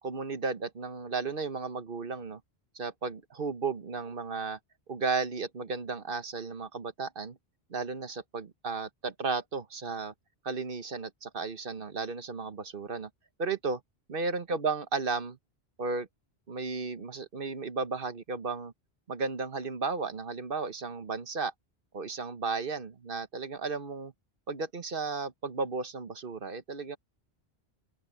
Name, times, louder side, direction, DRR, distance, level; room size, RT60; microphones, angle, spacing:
voice 1, 0.0-2.4 2.7-4.6 4.9-7.4 7.7-10.1 10.4-13.1 13.4-13.8 14.1-15.4 15.8-16.1 16.5-18.7 19.1-21.5 21.9-24.1 24.5-27.0, right 4 dB, 60° right, 1.3 m, -34 dB
open air
omnidirectional pair, 1.0 m